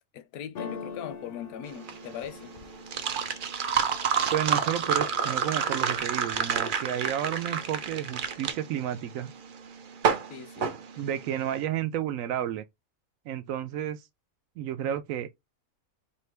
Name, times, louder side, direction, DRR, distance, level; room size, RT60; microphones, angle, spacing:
voice 1, 0.1-2.6 10.3-10.7, left 10 dB, 85° left, 1.1 m, -40 dB
sound 1, 0.5-4.4 4.9-5.5 5.8-6.5, left 5 dB, 60° left, 0.6 m, -44 dB
sound 2, 1.7-11.5, right 6 dB, 55° right, 0.6 m, -29 dB
voice 2, 4.3-9.3 11.0-12.6 13.3-14.0 14.6-15.3, right 10 dB, 75° right, 0.9 m, -31 dB
4.4 x 2.8 x 3.3 m
omnidirectional pair, 1.5 m